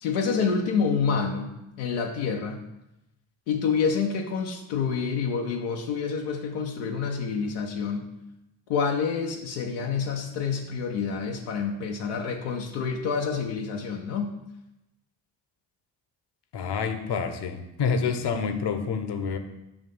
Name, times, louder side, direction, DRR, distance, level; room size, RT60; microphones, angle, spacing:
voice 1, 0.0-2.6 3.5-8.1 8.7-14.4, left 5 dB, 85° left, 1 dB, 0.7 m, -28 dB
voice 2, 16.5-19.4, left 6 dB, 55° left, 8 dB, 0.8 m, -28 dB
7.1 x 2.7 x 5.4 m, 0.92 s
hypercardioid pair, 45°, 48 cm